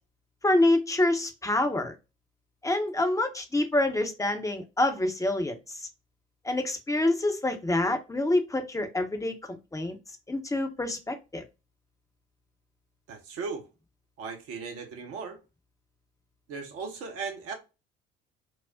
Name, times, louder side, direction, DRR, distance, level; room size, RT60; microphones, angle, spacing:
voice 1, 0.4-1.9 2.6-5.9 6.4-9.3 9.7-10.0 10.3-11.4, left 1 dB, 10° left, 0.8 m, -26 dB
voice 2, 13.1-13.7 14.2-15.4 16.5-17.5, right 5 dB, 55° right, 1.0 m, -37 dB
4.8 x 2.0 x 2.5 m
figure-of-eight pair, 50°, 30 cm